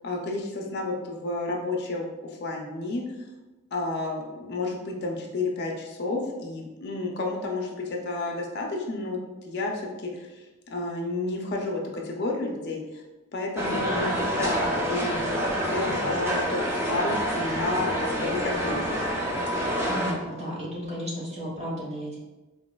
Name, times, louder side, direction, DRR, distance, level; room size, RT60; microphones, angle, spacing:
voice 1, 0.0-3.0 3.7-9.2 9.4-9.7 10.0-13.0 13.3-19.2, left 2 dB, 55° left, 0 dB, 0.5 m, -31 dB
sound 1, 13.6-20.1, equal, 10° right, 0.4 m, -27 dB
voice 2, 19.9-22.2, equal, 30° right, -7 dB, 1.3 m, -33 dB
4.0 x 2.5 x 2.2 m, 1.1 s
head